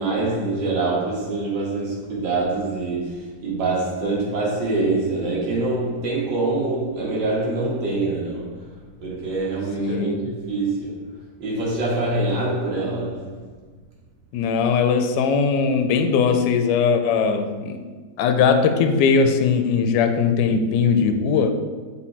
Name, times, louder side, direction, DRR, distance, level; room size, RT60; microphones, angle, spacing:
voice 1, 0.0-8.7 9.0-11.1 11.4-13.4, right 2 dB, 70° right, 2.1 m, -25 dB
voice 2, 9.8-10.2 14.3-17.8 18.2-21.5, left 5 dB, 75° left, 1.1 m, -20 dB
6.0 x 3.7 x 4.4 m
omnidirectional pair, 2.0 m